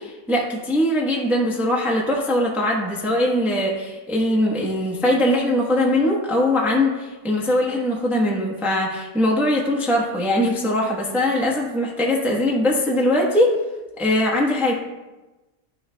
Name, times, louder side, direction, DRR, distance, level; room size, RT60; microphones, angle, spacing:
voice 1, 0.0-13.6 14.0-14.7, left 1 dB, ahead, -3 dB, 0.8 m, -21 dB
11.5 x 6.4 x 2.2 m, 1.1 s
omnidirectional pair, 1.5 m